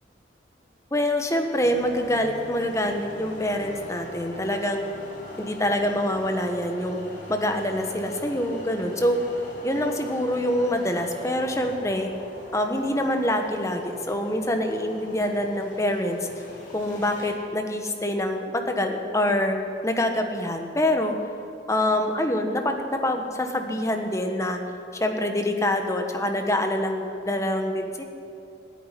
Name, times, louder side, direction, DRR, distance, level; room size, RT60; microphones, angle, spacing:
voice 1, 0.9-4.8 5.4-7.0 7.3-9.2 9.6-12.1 12.5-16.2 16.7-19.6 19.8-21.1 21.7-24.6 25.0-28.0, left 1 dB, 15° left, 5 dB, 1.2 m, -25 dB
sound 1, 1.6-17.3, left 1 dB, 50° left, 4.4 m, -42 dB
15.5 x 9.4 x 9.9 m, 2.7 s
head